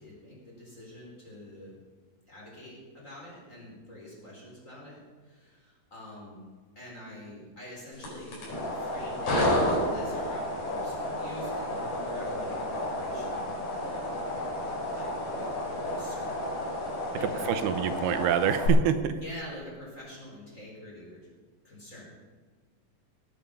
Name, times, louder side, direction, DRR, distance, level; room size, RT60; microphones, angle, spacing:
voice 1, 0.0-1.7 2.3-6.5 6.7-9.4 9.7-13.7 14.9-15.1 15.4-15.5 15.8-17.9 19.2-21.2 21.6-22.1, left 1 dB, 20° left, -4 dB, 4.5 m, -46 dB
sound 1, 7.9-18.7, left 1 dB, 75° left, 6.4 m, -31 dB
voice 2, 17.5-19.1, right 9 dB, 85° right, 10 dB, 2.7 m, -26 dB
18.5 x 9.4 x 5.6 m, 1.5 s
omnidirectional pair, 4.4 m